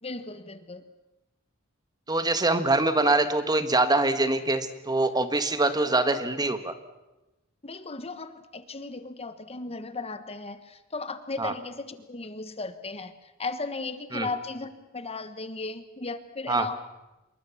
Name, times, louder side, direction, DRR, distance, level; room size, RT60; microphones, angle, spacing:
voice 1, 0.0-0.9 7.6-16.8, left 3 dB, 30° left, 11 dB, 1.4 m, -36 dB
voice 2, 2.1-6.7 11.4-11.5 14.1-14.3 16.5-16.7, right 2 dB, 20° right, 10 dB, 1.4 m, -24 dB
26.5 x 22.5 x 7.2 m, 1.0 s
head